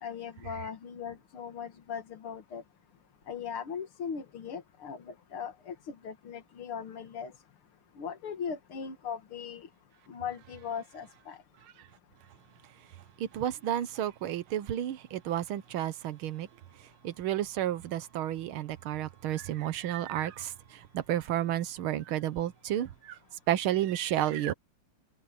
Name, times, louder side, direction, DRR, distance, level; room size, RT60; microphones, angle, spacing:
voice 1, 0.0-2.6 3.3-7.3 8.0-9.7 10.1-11.4, left 7 dB, 85° left, 2.6 m, -39 dB
voice 2, 13.2-16.5 17.0-23.2 23.5-24.5, right 12 dB, 75° right, 1.8 m, -31 dB
omnidirectional pair, 2.3 m